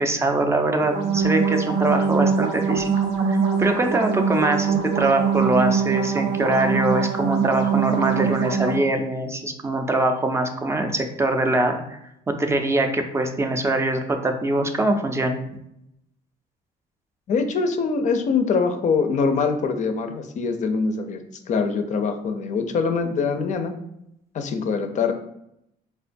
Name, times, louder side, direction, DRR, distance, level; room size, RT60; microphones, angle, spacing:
voice 1, 0.0-2.9 3.3-12.0 12.3-15.4, right 2 dB, 15° right, 5 dB, 0.4 m, -23 dB
sound 1, 0.8-8.8, right 6 dB, 75° right, 0.7 m, -23 dB
voice 2, 17.3-23.7 24.3-25.1, left 5 dB, 45° left, 6 dB, 0.4 m, -23 dB
4.2 x 2.2 x 2.5 m, 0.79 s
cardioid pair, 110°, 17 cm